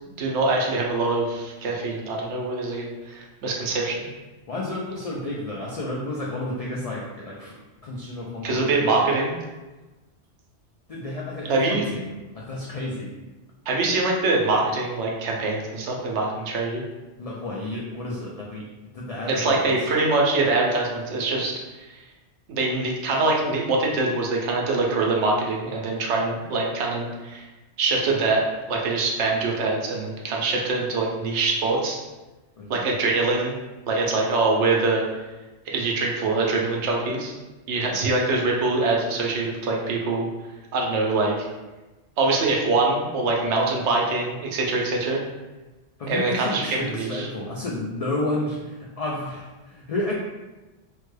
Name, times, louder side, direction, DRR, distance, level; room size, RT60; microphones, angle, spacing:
voice 1, 0.2-4.0 8.4-9.4 11.5-11.9 13.7-16.8 19.4-21.5 22.5-27.4 27.8-28.4 28.7-32.0 32.7-33.6 33.9-35.0 35.7-37.3 37.7-40.3 40.7-41.5 42.2-45.2 46.1-47.3, right 3 dB, 85° right, -1 dB, 0.9 m, -24 dB
voice 2, 4.5-7.6 7.8-9.0 10.9-13.1 17.2-18.7 18.9-19.8 32.6-32.9 37.8-38.0 46.0-50.1, left 2 dB, 75° left, -4 dB, 0.3 m, -31 dB
3.2 x 2.2 x 3.1 m, 1.1 s
omnidirectional pair, 1.2 m